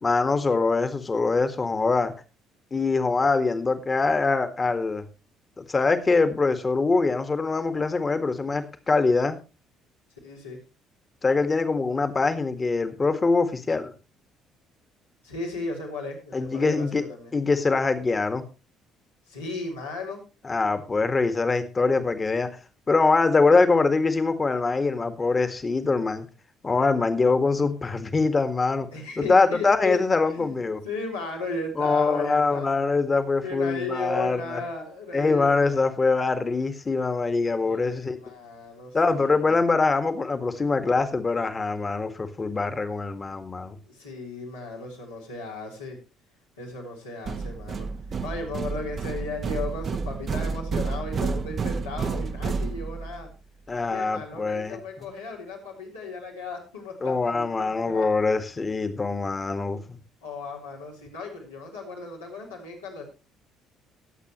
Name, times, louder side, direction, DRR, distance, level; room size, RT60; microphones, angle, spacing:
voice 1, 0.0-2.1 2.7-5.0 5.6-9.4 11.2-13.9 16.3-17.0 17.3-18.4 20.4-22.5 22.9-26.3 26.6-28.9 29.2-30.8 31.8-34.6 35.1-38.2 38.9-43.8 53.7-54.8 57.0-60.0, left 3 dB, 30° left, 9 dB, 1.9 m, -23 dB
voice 2, 10.2-10.6 15.2-17.3 19.3-20.2 28.9-30.0 30.3-32.7 33.4-35.9 37.6-39.5 43.9-46.0 46.6-47.9 48.2-53.3 53.9-58.1 59.8-59.9 60.2-63.0, left 3 dB, 85° left, -3 dB, 4.1 m, -35 dB
sound 1, 47.3-53.3, right 4 dB, 40° right, 1.1 m, -30 dB
20.5 x 8.4 x 3.1 m, 0.32 s
figure-of-eight pair, 50°, 0 cm